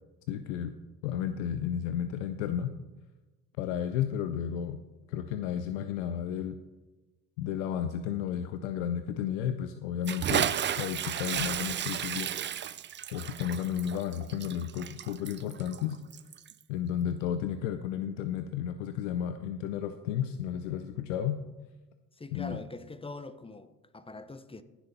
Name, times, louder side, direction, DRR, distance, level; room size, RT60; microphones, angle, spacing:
voice 1, 0.3-0.8 1.0-2.7 3.6-4.8 5.1-6.6 7.4-12.3 13.1-16.0 16.7-21.4 22.3-22.6, left 9 dB, 85° left, 0.6 m, -33 dB
Bathtub (filling or washing) / Splash splatter, 10.0-16.6, right 9 dB, 30° right, 0.5 m, -33 dB
voice 2, 22.2-24.6, left 2 dB, 15° left, 0.8 m, -43 dB
15.0 x 7.1 x 4.1 m
hypercardioid pair, 60°, 36 cm